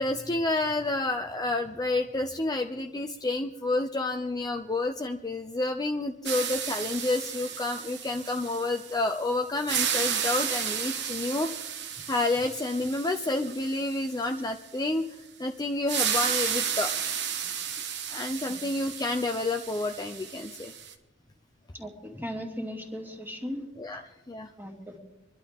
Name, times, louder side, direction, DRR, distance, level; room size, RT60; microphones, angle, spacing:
voice 1, 0.0-11.5 12.1-16.9 18.1-20.7 23.8-24.5, left 2 dB, 20° left, 5 dB, 0.6 m, -29 dB
sound 1, 6.3-9.2 9.5-14.4 15.9-20.9, right 8 dB, 60° right, 1.2 m, -33 dB
voice 2, 21.7-23.6 24.6-25.0, equal, 10° right, 1 dB, 2.2 m, -37 dB
27.0 x 11.5 x 3.6 m, 1.0 s
head